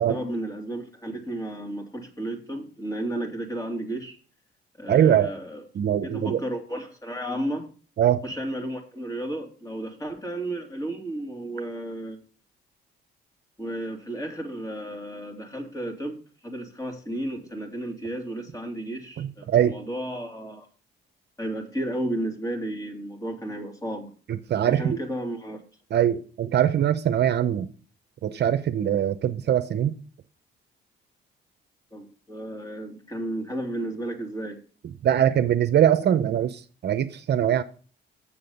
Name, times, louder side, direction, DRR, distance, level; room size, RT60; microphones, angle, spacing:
voice 1, 0.1-4.2 4.8-5.6 5.9-7.7 8.2-12.2 13.6-20.7 21.4-24.1 24.6-25.6 31.9-34.6, right 1 dB, 15° left, 2.6 m, -33 dB
voice 2, 4.9-5.3 5.7-6.4 8.0-8.2 19.2-19.8 24.3-25.0 25.9-27.7 28.2-30.0 35.0-37.6, right 10 dB, 60° right, 0.8 m, -22 dB
7.5 x 6.8 x 5.3 m
cardioid pair, 90°, 20 cm